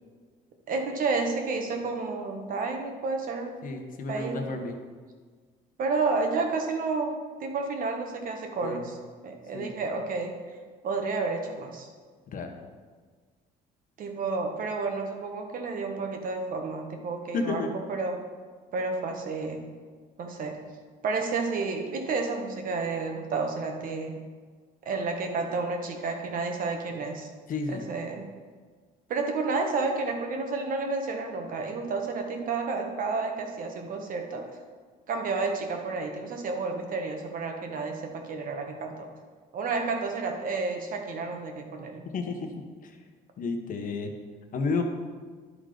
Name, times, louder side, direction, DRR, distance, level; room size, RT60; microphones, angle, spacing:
voice 1, 0.7-3.6 4.1-4.4 5.8-8.9 9.2-10.3 10.8-11.9 14.0-18.2 18.7-19.6 20.2-20.6 21.0-24.2 24.8-27.3 27.7-28.3 29.1-34.5 35.1-39.1 39.5-42.0, right 4 dB, 55° right, 3 dB, 1.3 m, -31 dB
voice 2, 3.6-4.8 8.6-8.9 9.5-9.7 12.3-12.5 17.3-17.7 27.5-27.8 42.1-42.5 42.8-43.0 43.4-44.1 44.5-44.8, left 4 dB, 55° left, 4 dB, 1.1 m, -31 dB
11.0 x 3.9 x 5.0 m, 1.5 s
cardioid pair, 110°, 17 cm